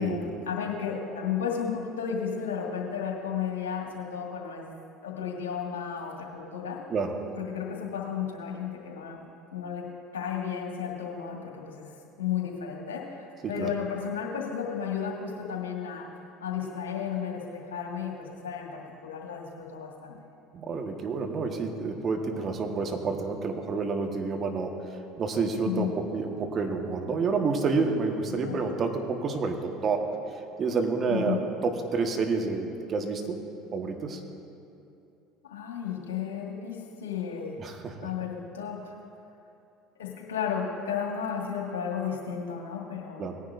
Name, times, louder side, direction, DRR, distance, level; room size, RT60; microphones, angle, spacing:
voice 1, 0.0-4.7 5.0-6.8 7.4-9.8 10.1-11.9 12.2-16.1 16.4-20.2 25.6-26.0 28.5-28.6 31.1-31.4 35.4-37.6 38.0-38.9 40.0-43.3, left 7 dB, 80° left, -1 dB, 1.9 m, -33 dB
voice 2, 20.5-30.1 30.6-33.4 33.7-34.2 37.6-38.1 43.2-43.4, right 4 dB, 40° right, 3 dB, 1.5 m, -29 dB
18.5 x 10.0 x 2.7 m, 2.7 s
hypercardioid pair, 70°, 0 cm